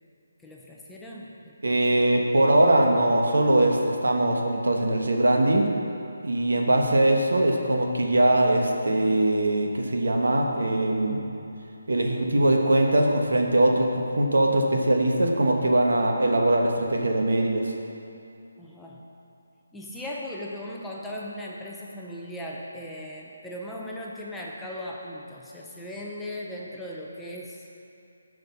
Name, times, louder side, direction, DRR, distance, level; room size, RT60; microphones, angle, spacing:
voice 1, 0.4-2.3 18.6-19.0 19.7-27.6, left 1 dB, 5° left, -4 dB, 0.7 m, -38 dB
voice 2, 1.6-5.7 6.2-11.2 11.9-17.7, right 1 dB, 85° right, 1 dB, 1.3 m, -21 dB
9.4 x 5.3 x 5.9 m, 2.7 s
hypercardioid pair, 165°, 0 cm